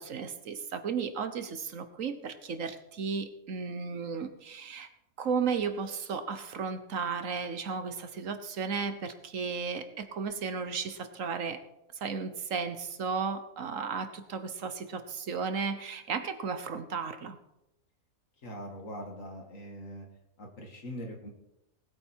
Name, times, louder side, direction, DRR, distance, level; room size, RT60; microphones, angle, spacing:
voice 1, 0.0-4.9 5.2-11.6 11.9-17.4, right 5 dB, 65° right, 10 dB, 1.4 m, -34 dB
voice 2, 18.4-20.1 20.4-21.3, equal, 65° left, 2 dB, 2.5 m, -42 dB
19.5 x 8.6 x 4.6 m, 0.87 s
omnidirectional pair, 1.5 m